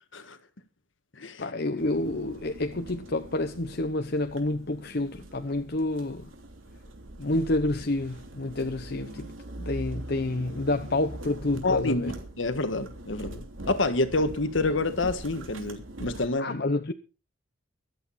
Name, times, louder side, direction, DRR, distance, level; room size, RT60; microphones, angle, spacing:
voice 1, 1.4-6.3 7.2-12.1 16.4-16.9, left 2 dB, 50° left, 0.9 m, -29 dB
sound 1, 1.8-16.3, right 1 dB, 80° right, 3.1 m, -42 dB
voice 2, 11.6-16.6, left 2 dB, 70° left, 1.6 m, -28 dB
24.5 x 8.4 x 4.2 m
head